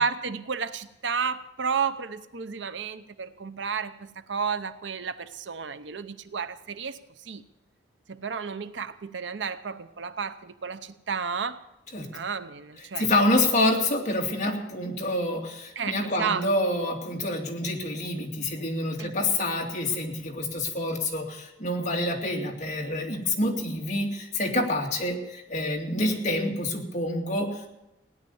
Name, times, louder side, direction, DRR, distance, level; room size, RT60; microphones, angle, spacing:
voice 1, 0.0-7.4 8.1-11.6 12.1-13.1 13.4-13.5 15.8-16.5 19.0-19.1, right 6 dB, 80° right, 12 dB, 0.7 m, -32 dB
voice 2, 13.0-27.7, left 1 dB, 40° left, 0 dB, 2.5 m, -27 dB
17.0 x 10.5 x 7.1 m, 0.92 s
head